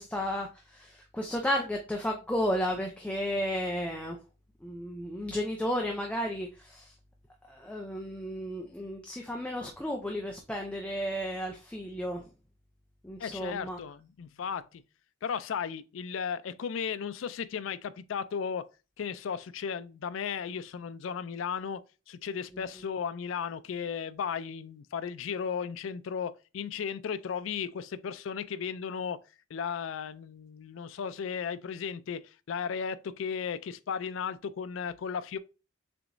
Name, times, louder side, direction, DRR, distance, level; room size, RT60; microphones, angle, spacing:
voice 1, 0.0-4.2 4.6-6.9 7.5-12.3 13.0-13.8 22.5-22.6, equal, 5° left, 0.5 m, -33 dB
voice 2, 13.2-14.8 15.2-18.7 19.0-21.8 22.1-29.2 29.5-32.2 32.5-35.4, left 7 dB, 80° left, 0.4 m, -35 dB
6.7 x 3.0 x 2.6 m
head